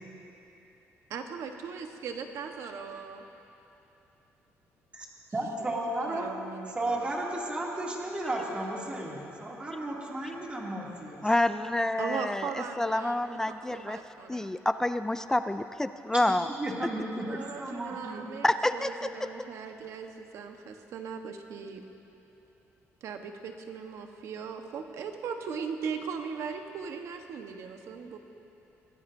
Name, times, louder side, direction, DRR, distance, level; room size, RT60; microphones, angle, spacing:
voice 1, 1.1-3.2 5.5-5.7 6.1-7.0 12.0-14.5 17.3-21.8 23.0-28.2, right 6 dB, 70° right, 5 dB, 1.2 m, -39 dB
voice 2, 5.3-6.3 6.7-11.3 16.5-18.3, right 1 dB, 20° right, -3 dB, 2.6 m, -34 dB
voice 3, 11.2-14.0 14.3-16.5 18.4-18.9, left 1 dB, 10° left, 11 dB, 0.4 m, -28 dB
24.0 x 18.0 x 2.7 m, 3.0 s
cardioid pair, 130°, 5 cm